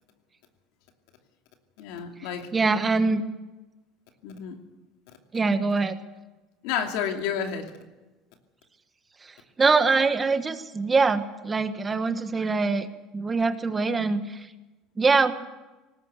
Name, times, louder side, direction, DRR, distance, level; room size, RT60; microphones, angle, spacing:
voice 1, 1.8-2.5 4.2-4.6 6.6-7.7, left 7 dB, 80° left, 4 dB, 2.7 m, -30 dB
voice 2, 2.5-3.2 5.3-6.0 9.2-9.3 9.6-12.9 13.1-14.5 15.0-15.3, right 4 dB, 20° right, 10 dB, 1.4 m, -23 dB
19.0 x 18.0 x 8.2 m, 1.1 s
supercardioid pair, 120°, 0 cm